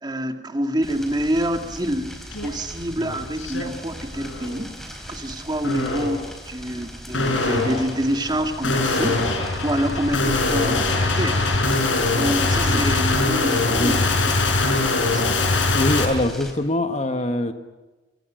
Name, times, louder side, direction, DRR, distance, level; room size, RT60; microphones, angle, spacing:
voice 1, 0.0-4.7 5.1-11.4 12.1-14.2 14.6-15.3, equal, 20° right, 5 dB, 2.3 m, -27 dB
sound 1, 0.8-16.5, equal, ahead, 4.8 m, -38 dB
sound 2, 2.3-2.5 2.9-3.6 4.1-4.6 5.6-6.3 7.1-16.1, left 3 dB, 85° left, 5.8 m, -22 dB
voice 2, 15.7-17.5, left 1 dB, 35° left, 8 dB, 1.5 m, -23 dB
29.0 x 24.0 x 6.5 m, 1.1 s
head